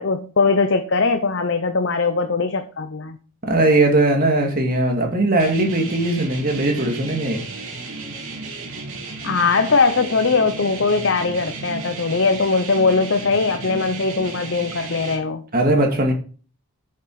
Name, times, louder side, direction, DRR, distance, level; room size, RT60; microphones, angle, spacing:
voice 1, 0.0-3.2 9.2-15.4, left 4 dB, 55° left, 8 dB, 0.8 m, -20 dB
voice 2, 3.4-7.4 15.5-16.1, right 2 dB, 40° right, 2 dB, 2.4 m, -19 dB
sound 1, 5.4-15.2, right 3 dB, 80° right, 3.3 m, -34 dB
9.4 x 7.4 x 4.8 m, 0.39 s
head